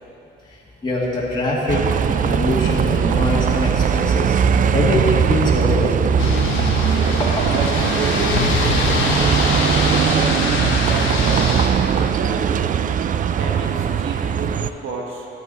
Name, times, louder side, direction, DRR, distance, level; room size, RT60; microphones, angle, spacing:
voice 1, 0.8-4.4 4.7-6.4 7.2-7.3, left 1 dB, 20° left, -6 dB, 2.1 m, -23 dB
Bus, 1.7-14.7, right 8 dB, 45° right, 0.4 m, -19 dB
sound 1, 6.2-11.7, left 4 dB, 85° left, 1.2 m, -23 dB
voice 2, 7.5-15.3, right 3 dB, 90° right, 0 dB, 1.4 m, -31 dB
13.0 x 8.1 x 4.2 m, 3.0 s
cardioid pair, 90°, 20 cm